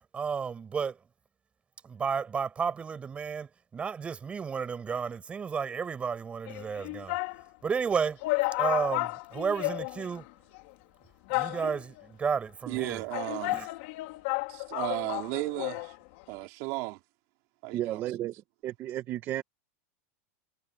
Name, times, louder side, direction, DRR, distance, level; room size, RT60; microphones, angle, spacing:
voice 1, 0.1-1.0 1.8-7.2 7.6-8.2 8.6-10.3 11.3-13.0 13.5-13.7, right 6 dB, 15° right, 7.2 m, -32 dB
sound 1, 6.5-7.4 7.9-8.0 8.2-10.3 10.5-10.6 11.3-12.0 12.8-16.0 16.2-16.3, left 24 dB, 55° left, 2.1 m, -32 dB
voice 2, 12.7-13.6 14.5-15.9 16.3-17.0 17.6-18.0, right 25 dB, 50° right, 4.1 m, -35 dB
voice 3, 17.7-18.3 18.6-19.4, right 13 dB, 30° right, 1.3 m, -33 dB
supercardioid pair, 155°, 7 cm